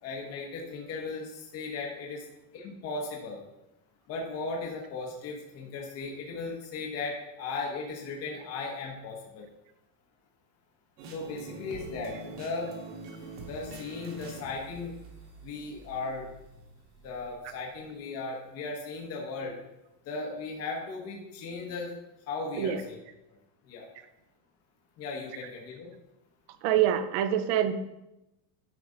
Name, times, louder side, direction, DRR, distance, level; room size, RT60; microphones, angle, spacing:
voice 1, 0.0-2.2 2.5-3.4 4.1-9.5 11.1-12.7 13.4-14.9 15.4-16.3 17.0-19.5 20.1-21.9 22.3-23.0 23.7-23.9 25.0-25.9, left 3 dB, 30° left, -2 dB, 1.2 m, -37 dB
sound 1, 11.0-17.8, right 3 dB, 65° right, 2.1 m, -45 dB
voice 2, 26.6-27.7, right 10 dB, 35° right, 11 dB, 0.4 m, -25 dB
11.0 x 5.0 x 3.9 m, 0.91 s
cardioid pair, 175°, 47 cm